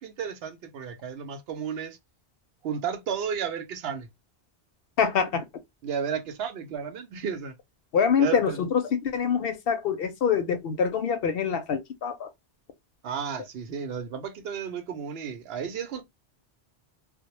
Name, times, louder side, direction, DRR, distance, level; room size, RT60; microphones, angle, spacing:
voice 1, 0.0-2.0 2.6-4.1 5.8-7.6 8.2-8.6 13.0-16.0, right 7 dB, 70° right, 0.8 m, -33 dB
voice 2, 5.0-5.4 7.9-12.3, left 6 dB, 65° left, 0.7 m, -25 dB
2.1 x 2.1 x 2.8 m
omnidirectional pair, 1.1 m